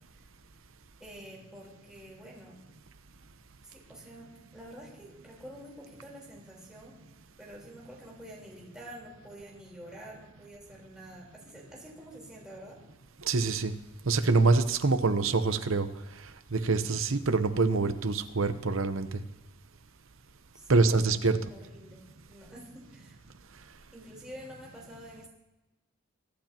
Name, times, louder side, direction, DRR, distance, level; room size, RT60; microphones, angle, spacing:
voice 1, 1.0-2.6 3.6-7.0 7.4-12.8 20.5-22.0 22.3-23.2 23.9-25.3, right 1 dB, 5° right, -4 dB, 4.0 m, -48 dB
voice 2, 13.2-13.7 14.1-15.9 16.5-19.2 20.7-21.4, right 3 dB, 70° right, 10 dB, 0.9 m, -25 dB
23.5 x 10.5 x 2.9 m, 1.0 s
head